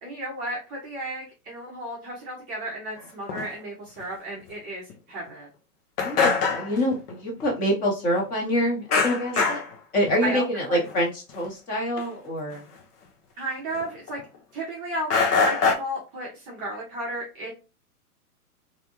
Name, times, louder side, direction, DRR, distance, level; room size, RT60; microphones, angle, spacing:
voice 1, 0.0-5.5 9.3-9.5 10.2-10.8 13.4-14.2 14.5-15.1 15.4-17.5, right 1 dB, 20° right, -4 dB, 0.6 m, -33 dB
sound 1, 3.3-3.5 4.0-4.1 4.5-4.6 4.9-5.0 5.3-5.4 6.0-7.1 7.4-7.5 8.9-9.7 10.1-10.4 10.8-11.0 11.3-11.5 12.0-12.1 12.5-12.6 13.7-14.4 15.1-15.7, left 5 dB, 80° left, 0.8 m, -24 dB
voice 2, 6.0-9.6 9.9-12.6, equal, 20° left, -1 dB, 0.8 m, -26 dB
2.7 x 2.2 x 2.8 m, 0.30 s
hypercardioid pair, 135°, 46 cm